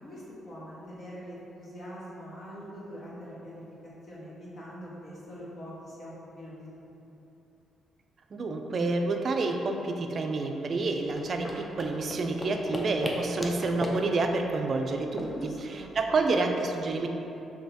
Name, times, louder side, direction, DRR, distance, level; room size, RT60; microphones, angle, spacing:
voice 1, 0.0-3.6 4.0-6.9 15.1-15.9, equal, 55° left, -7 dB, 1.2 m, -43 dB
voice 2, 8.3-17.1, right 3 dB, 50° right, 4 dB, 0.3 m, -29 dB
sound 1, 11.0-16.2, left 1 dB, 20° left, 0.5 m, -38 dB
4.0 x 3.2 x 2.7 m, 2.9 s
supercardioid pair, 60°, 0 cm